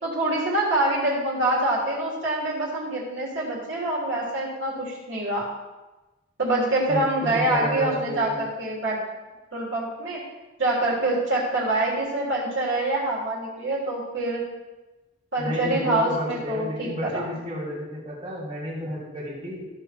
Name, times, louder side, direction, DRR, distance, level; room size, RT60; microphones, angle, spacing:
voice 1, 0.0-5.5 6.4-9.0 9.5-10.2 10.6-14.4 15.3-17.2, right 2 dB, 60° right, -5 dB, 3.3 m, -25 dB
voice 2, 6.9-8.4 15.4-19.6, equal, 30° right, -7 dB, 3.0 m, -32 dB
14.0 x 6.1 x 4.5 m, 1.1 s
head